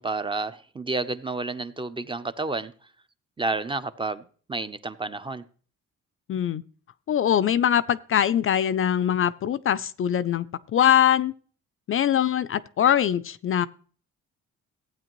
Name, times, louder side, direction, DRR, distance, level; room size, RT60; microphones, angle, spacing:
voice 1, 0.0-2.7 3.4-5.4, right 3 dB, 15° right, 0.5 m, -30 dB
voice 2, 6.3-6.6 7.1-10.5 10.7-11.3 11.9-13.7, left 10 dB, 45° left, 0.4 m, -22 dB
15.0 x 8.7 x 3.0 m
cardioid pair, 90°, 30 cm